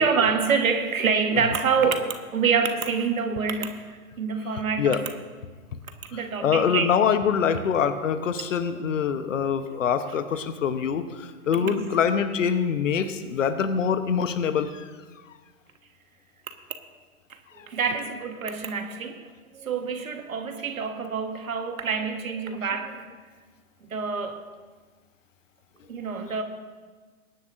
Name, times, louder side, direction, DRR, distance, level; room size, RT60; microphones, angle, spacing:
voice 1, 0.0-5.1 6.1-7.0 11.5-11.8 17.3-17.4 17.6-23.1 23.8-24.4 25.9-26.4, right 5 dB, 65° right, 1.4 m, -26 dB
voice 2, 6.1-14.9, left 7 dB, 60° left, 1.0 m, -24 dB
21.0 x 10.5 x 2.6 m
figure-of-eight pair, 115°, 44 cm